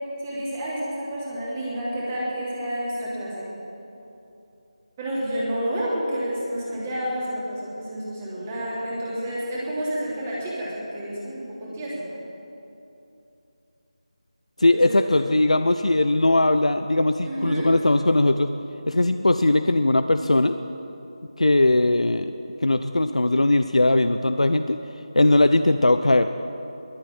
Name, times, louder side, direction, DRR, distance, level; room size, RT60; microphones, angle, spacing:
voice 1, 0.2-3.5 5.0-12.1 14.7-15.1 17.2-17.7, right 1 dB, 20° right, -6 dB, 3.2 m, -30 dB
voice 2, 14.6-18.5 18.9-20.5 21.4-22.3 22.6-24.8 25.2-26.3, left 2 dB, 85° left, 9 dB, 0.7 m, -19 dB
21.5 x 7.6 x 8.7 m, 2.8 s
figure-of-eight pair, 165°, 3 cm